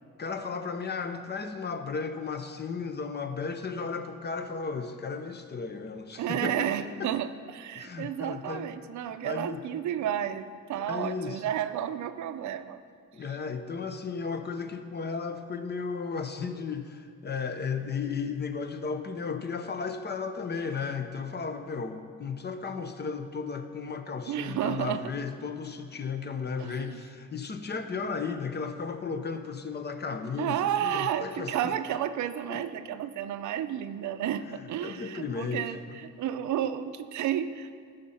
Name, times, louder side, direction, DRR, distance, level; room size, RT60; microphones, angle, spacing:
voice 1, 0.2-6.7 7.0-7.1 7.7-8.7 9.2-9.6 10.9-11.4 13.1-31.5 32.5-32.6 34.8-36.0, left 5 dB, 35° left, 8 dB, 0.8 m, -34 dB
voice 2, 6.2-12.8 13.3-13.4 24.3-25.0 26.6-27.0 30.4-37.8, right 10 dB, 70° right, 11 dB, 0.6 m, -32 dB
13.0 x 5.2 x 5.6 m, 2.1 s
cardioid pair, 90°, 30 cm